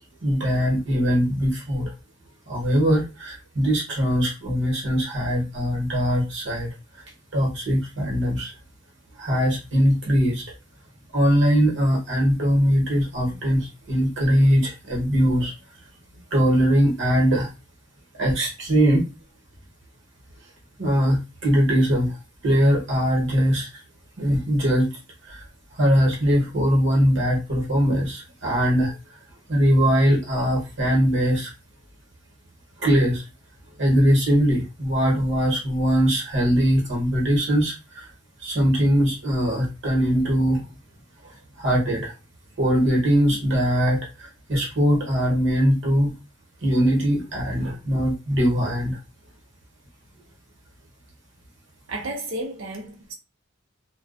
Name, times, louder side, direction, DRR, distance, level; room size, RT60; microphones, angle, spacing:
voice 1, 0.2-1.9 2.5-6.7 7.3-8.5 9.2-10.4 11.1-15.5 16.3-17.5 18.2-19.0 20.8-22.2 22.4-23.8 24.2-24.9 25.3-25.4 25.8-28.9 29.5-31.5 32.8-33.2 33.8-38.1 38.4-40.6 41.2-41.3 41.6-42.1 42.6-46.1 46.6-49.0, equal, 65° right, 1.1 m, -21 dB
voice 2, 51.9-53.1, right 1 dB, 85° right, 0.6 m, -32 dB
2.3 x 2.2 x 2.4 m
head